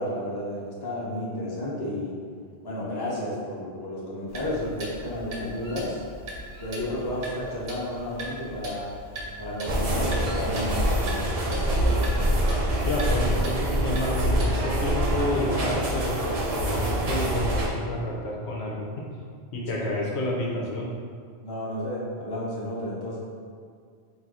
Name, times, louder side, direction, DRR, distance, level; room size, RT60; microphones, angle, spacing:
voice 1, 0.0-2.1 2.6-6.0 6.6-8.9 9.4-12.1 21.4-23.2, left 1 dB, 25° left, -7 dB, 0.9 m, -32 dB
Clock, 4.3-14.8, right 1 dB, 70° right, 1.1 m, -39 dB
sound 1, 9.6-17.7, right 1 dB, 40° right, 0.6 m, -25 dB
voice 2, 12.8-18.9 19.5-20.9, left 1 dB, 75° left, -3 dB, 1.0 m, -30 dB
4.1 x 2.7 x 4.7 m, 2.1 s
omnidirectional pair, 1.1 m